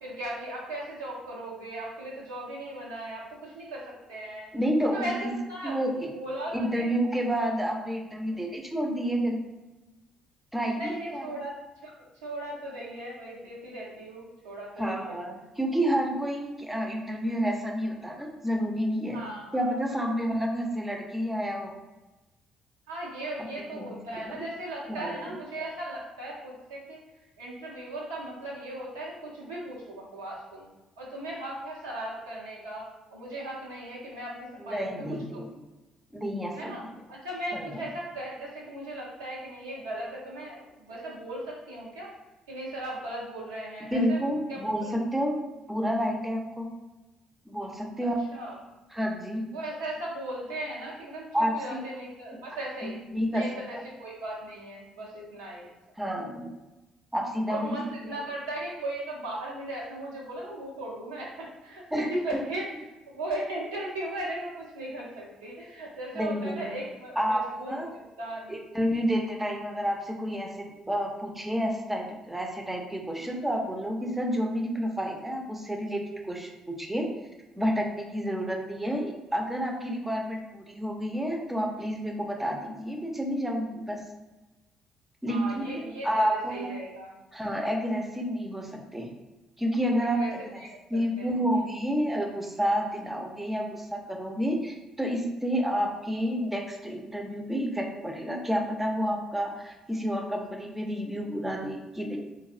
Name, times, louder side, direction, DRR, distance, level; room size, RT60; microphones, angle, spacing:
voice 1, 0.0-4.5 4.8-5.8 6.1-6.9 10.7-11.6 11.8-11.9 12.2-15.2 19.0-20.0 22.9-27.0 27.4-30.7 31.0-35.4 36.5-42.1 42.5-44.2 44.5-44.9 48.3-48.7 49.5-52.9 53.3-55.7 57.5-62.6 63.1-68.5 73.2-73.3 85.3-87.1 90.0-90.8 91.2-91.6, right 1 dB, 80° right, -5 dB, 0.6 m, -37 dB
voice 2, 4.5-5.3 5.6-6.1 6.5-9.4 10.5-11.3 14.8-19.2 19.5-21.7 23.4-24.4 24.9-25.3 34.7-35.5 36.1-36.7 37.5-37.8 43.9-45.4 45.7-46.7 47.5-48.2 48.9-49.5 51.3-51.8 52.8-53.4 53.7-53.8 56.0-56.5 57.1-58.2 61.9-62.1 66.2-66.7 67.2-67.9 68.5-77.1 77.6-84.0 85.2-86.7 87.3-89.1 89.6-90.4 90.9-102.2, equal, 10° right, 2 dB, 0.5 m, -30 dB
3.4 x 2.0 x 2.5 m, 1.1 s
figure-of-eight pair, 50°, 2 cm